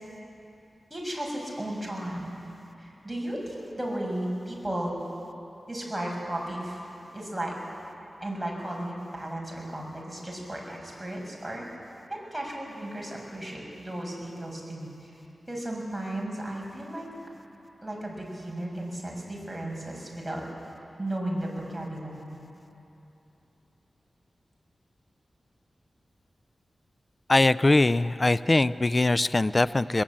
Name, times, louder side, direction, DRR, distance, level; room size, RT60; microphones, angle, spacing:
voice 1, 0.9-2.4 2.8-5.0 5.7-6.8 7.1-7.5 8.2-11.7 12.1-15.2 15.5-17.1 17.8-20.4 21.0-22.4, right 1 dB, 10° right, -2 dB, 7.0 m, -34 dB
voice 2, 27.3-30.0, left 2 dB, 35° left, 16 dB, 0.5 m, -22 dB
22.0 x 20.5 x 8.8 m, 3.0 s
cardioid pair, 60°, 0 cm